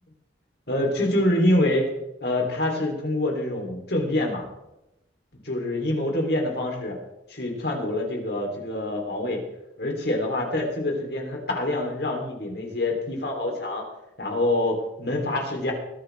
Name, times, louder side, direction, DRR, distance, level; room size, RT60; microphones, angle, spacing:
voice 1, 0.7-1.9 2.2-4.5 5.4-7.0 7.3-9.4 9.8-13.8 14.2-15.7, left 1 dB, 60° left, 1 dB, 3.3 m, -26 dB
20.5 x 10.0 x 3.4 m, 0.90 s
head